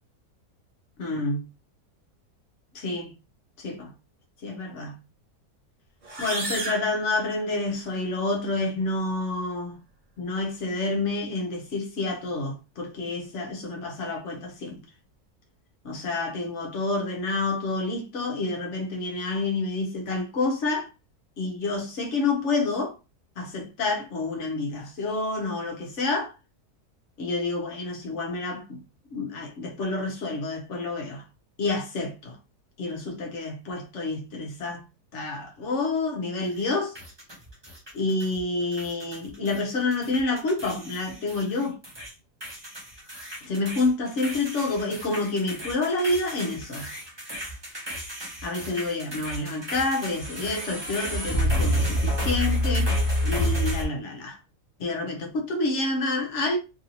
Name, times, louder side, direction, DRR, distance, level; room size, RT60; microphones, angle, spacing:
voice 1, 1.0-1.5 2.7-3.1 3.6-3.9 4.4-5.0 6.2-9.8 10.2-14.8 15.8-20.9 21.4-23.0 23.4-26.3 27.2-28.8 29.1-31.2 31.6-32.4 32.8-34.8 35.1-37.0 37.9-41.8 43.4-46.9 48.4-54.4 54.8-56.6, left 3 dB, 55° left, 1.0 m, -28 dB
sound 1, 6.0-7.9, right 3 dB, 50° right, 0.4 m, -34 dB
sound 2, 36.9-38.4 38.7-39.6 39.9-42.1 42.4-53.8, equal, 20° right, 0.9 m, -30 dB
3.0 x 2.6 x 2.8 m
omnidirectional pair, 1.7 m